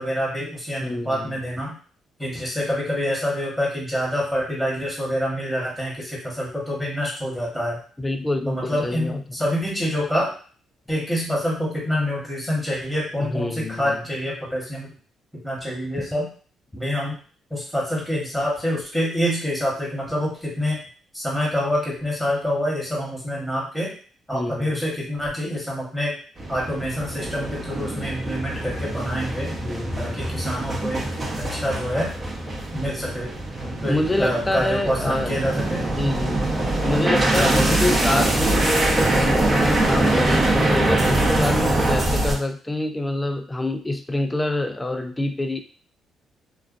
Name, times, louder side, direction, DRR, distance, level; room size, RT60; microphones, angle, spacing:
voice 1, 0.0-1.7 2.2-7.8 8.5-10.3 10.9-14.9 15.4-16.3 16.7-17.1 17.5-20.8 21.1-23.9 24.3-26.1 26.5-29.5 30.0-31.0 31.5-32.1 32.7-33.3 33.6-35.8 37.4-37.8, equal, 5° right, -4 dB, 1.1 m, -26 dB
voice 2, 0.8-1.5 8.0-9.2 13.2-14.0 24.3-24.8 29.6-30.3 33.8-35.4 35.9-36.5 36.8-45.6, left 1 dB, 15° left, 8 dB, 0.3 m, -26 dB
sound 1, 26.4-42.3, right 2 dB, 35° right, 0.7 m, -23 dB
2.4 x 2.2 x 2.4 m, 0.42 s
cardioid pair, 90°, 0 cm